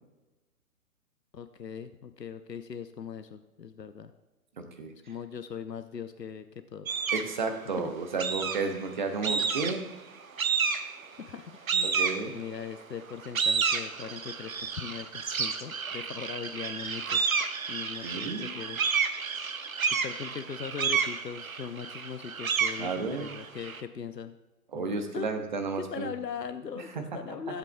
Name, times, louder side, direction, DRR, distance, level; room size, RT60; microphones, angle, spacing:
voice 1, 1.3-4.1 5.1-6.5 6.7-7.0 7.8-7.9 11.2-11.9 12.2-17.2 17.7-18.8 20.0-24.4 24.7-25.3 25.8-27.6, left 7 dB, 90° left, 10 dB, 0.7 m, -40 dB
voice 2, 4.6-4.9 7.1-9.9 11.8-12.3 18.0-18.5 22.8-23.3 24.7-26.1 26.8-27.4, right 4 dB, 30° right, 7 dB, 0.9 m, -33 dB
sound 1, 6.9-7.4 8.2-8.8 9.2-9.9 10.4-11.1 11.7-12.6 13.1-23.8, right 5 dB, 60° right, 0.9 m, -30 dB
15.5 x 8.1 x 2.2 m, 1.1 s
figure-of-eight pair, 135°, 48 cm